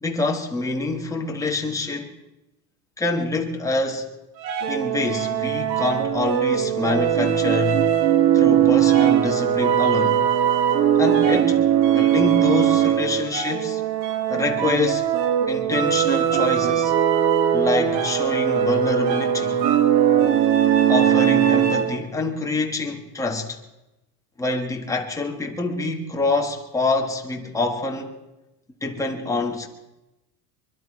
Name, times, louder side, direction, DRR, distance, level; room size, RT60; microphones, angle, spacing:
voice 1, 0.0-2.1 3.0-4.1 4.7-7.9 8.3-10.2 11.0-11.7 11.9-13.8 14.3-15.1 15.5-16.9 17.5-19.6 20.9-23.6 24.4-28.1 28.8-29.7, left 3 dB, 5° left, 1.4 m, -26 dB
sound 1, 4.4-22.1, right 10 dB, 85° right, 1.6 m, -20 dB
24.5 x 12.0 x 4.8 m
supercardioid pair, 155°, 50 cm